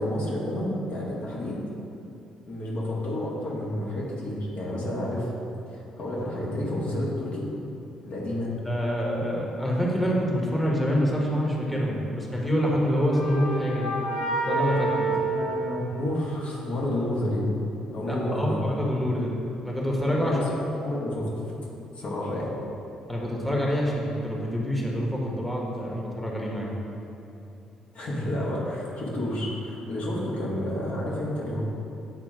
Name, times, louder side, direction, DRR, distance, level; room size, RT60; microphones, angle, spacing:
voice 1, 0.0-1.6 2.4-5.3 5.7-7.5 8.0-8.5 15.0-17.6 17.9-18.6 20.2-20.4 20.7-21.5 21.9-22.5 27.9-31.6, left 1 dB, 55° left, -5 dB, 1.4 m, -30 dB
voice 2, 8.6-13.9 14.4-15.1 18.1-19.3 19.6-20.4 23.1-26.7, equal, 5° left, -3 dB, 1.5 m, -26 dB
sound 1, 12.6-16.5, right 2 dB, 85° left, 1.0 m, -29 dB
8.1 x 3.7 x 4.9 m, 2.8 s
figure-of-eight pair, 45°, 3 cm